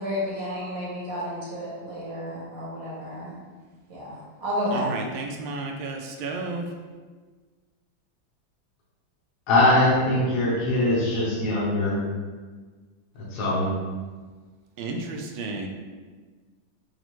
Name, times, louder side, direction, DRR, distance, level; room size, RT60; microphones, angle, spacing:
voice 1, 0.0-3.3 3.9-5.0, equal, 55° right, -6 dB, 1.1 m, -31 dB
voice 2, 4.7-6.7 14.8-15.7, right 3 dB, 90° right, 2 dB, 1.4 m, -32 dB
voice 3, 9.5-12.1 13.3-13.7, left 1 dB, 60° left, -7 dB, 1.4 m, -22 dB
5.2 x 2.4 x 3.0 m, 1.4 s
omnidirectional pair, 2.2 m